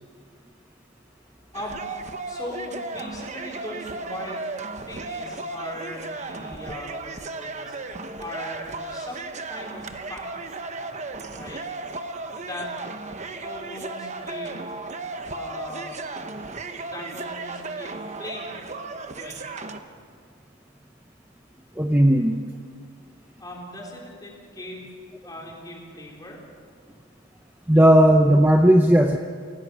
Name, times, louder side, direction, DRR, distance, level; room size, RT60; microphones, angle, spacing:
voice 1, 1.5-1.8 2.3-4.4 4.9-7.8 8.2-10.2 11.3-11.6 12.3-12.7 13.4-14.6 15.3-16.0 16.8-18.7 19.1-19.4 23.4-24.9 25.2-26.4, left 1 dB, 20° left, -2 dB, 4.0 m, -39 dB
sound 1, 1.5-19.8, right 3 dB, 35° right, 1.0 m, -35 dB
voice 2, 21.8-22.4 27.7-29.2, right 1 dB, 10° right, 4 dB, 0.7 m, -16 dB
28.0 x 16.5 x 6.2 m, 2.1 s
head